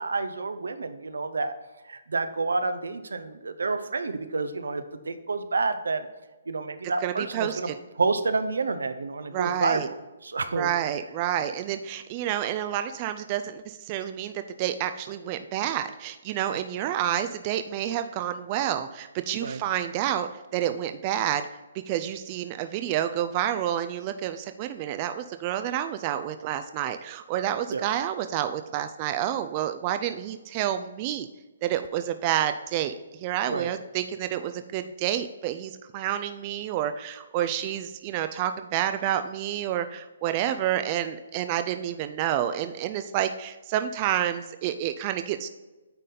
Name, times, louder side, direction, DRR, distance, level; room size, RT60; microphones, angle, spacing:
voice 1, 0.0-1.5 1.8-6.1 6.5-7.7 8.0-10.0 10.2-10.7 16.5-16.6 19.4-19.6 27.7-27.8 33.5-33.7, right 3 dB, 85° right, 9 dB, 0.6 m, -29 dB
voice 2, 7.0-7.7 9.3-9.9 10.5-14.3 14.6-21.4 21.9-31.3 31.6-32.9 33.2-45.5, right 11 dB, 30° right, 9 dB, 0.3 m, -29 dB
9.0 x 4.1 x 3.8 m, 1.1 s
hypercardioid pair, 145°, 0 cm